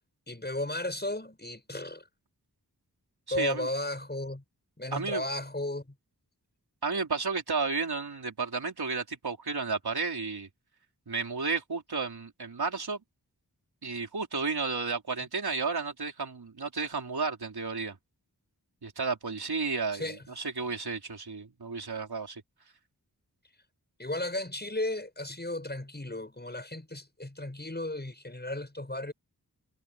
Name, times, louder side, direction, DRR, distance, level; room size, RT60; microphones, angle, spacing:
voice 1, 0.3-2.0 3.3-4.4 4.8-5.9 19.9-20.2 24.0-29.1, left 1 dB, 25° left, 7.0 m, -34 dB
voice 2, 3.3-3.7 4.9-5.2 6.8-10.5 11.1-13.0 13.8-18.0 18.8-22.4, right 4 dB, 85° right, 4.1 m, -32 dB
wide cardioid pair, 65°, 37 cm